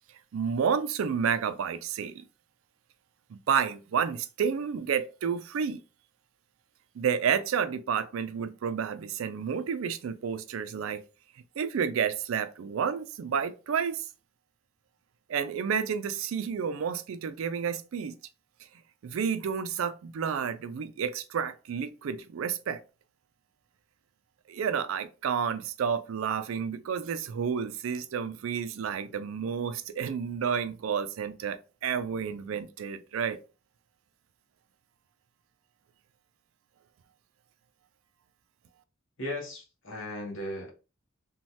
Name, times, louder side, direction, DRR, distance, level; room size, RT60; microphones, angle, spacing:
voice 1, 0.3-2.2 3.3-5.8 7.0-11.0 11.6-14.1 15.3-18.1 19.0-22.8 24.5-33.4, right 7 dB, 70° right, 0.4 m, -30 dB
voice 2, 39.2-40.7, left 1 dB, 65° left, 1.1 m, -36 dB
3.1 x 2.2 x 2.7 m
head